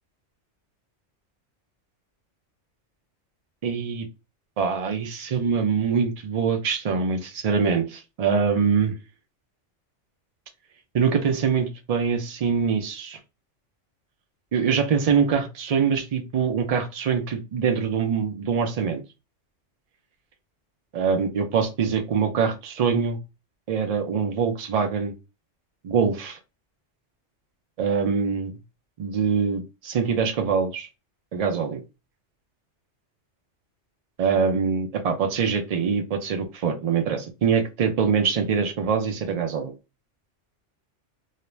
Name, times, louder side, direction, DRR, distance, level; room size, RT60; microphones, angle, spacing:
voice 1, 3.6-4.1 4.6-8.9 10.9-13.2 14.5-19.0 20.9-23.2 23.7-25.1 25.8-26.4 27.8-28.5 29.0-30.9 31.3-31.8 34.2-39.7, right 6 dB, 70° right, 0.3 m, -24 dB
2.4 x 2.1 x 3.0 m
omnidirectional pair, 1.3 m